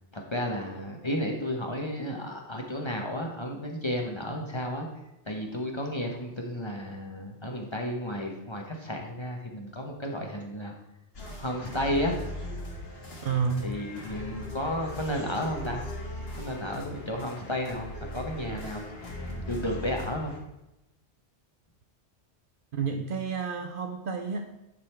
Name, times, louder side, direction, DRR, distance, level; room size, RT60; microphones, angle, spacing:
voice 1, 0.1-4.9 5.3-10.7 11.4-12.1 13.6-15.8 16.4-18.9 19.2-20.3, equal, 25° left, 1 dB, 0.9 m, -32 dB
sound 1, 11.1-20.4, left 1 dB, 55° left, 1.6 m, -39 dB
voice 2, 13.2-13.7 22.7-24.5, right 6 dB, 60° right, 5 dB, 0.7 m, -30 dB
9.6 x 3.9 x 4.3 m, 0.92 s
omnidirectional pair, 1.2 m